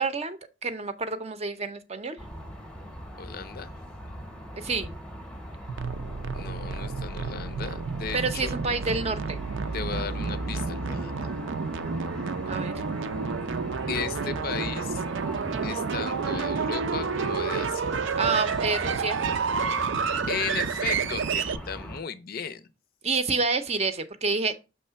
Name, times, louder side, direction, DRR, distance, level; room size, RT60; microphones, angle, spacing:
voice 1, 0.0-2.2 4.5-4.9 8.1-9.4 12.5-12.8 18.2-19.2 23.0-24.6, right 4 dB, 35° right, 0.6 m, -28 dB
sound 1, 2.2-22.0, equal, 5° left, 0.7 m, -40 dB
voice 2, 3.2-3.7 6.3-8.6 9.7-11.1 13.9-15.0 15.6-18.0 20.3-22.6, left 6 dB, 50° left, 0.5 m, -35 dB
sound 2, 5.7-21.6, right 5 dB, 75° right, 0.5 m, -30 dB
6.4 x 3.2 x 5.6 m
head